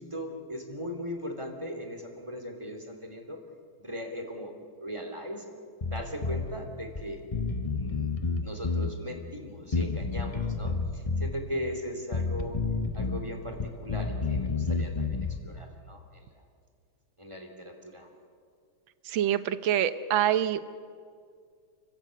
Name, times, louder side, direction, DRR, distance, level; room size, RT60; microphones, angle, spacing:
voice 1, 0.0-3.4 3.8-5.4 5.9-7.2 7.7-8.1 8.4-12.6 12.9-16.3 17.2-18.1, equal, 15° right, 3 dB, 3.0 m, -39 dB
Bass guitar, 5.8-6.5 7.0-7.1 7.3-8.9 9.7-11.3 12.1-13.2 13.5-15.4, left 4 dB, 30° left, 0.6 m, -30 dB
voice 2, 19.1-20.6, right 10 dB, 70° right, 12 dB, 1.6 m, -26 dB
30.0 x 16.0 x 8.2 m, 2.2 s
omnidirectional pair, 2.3 m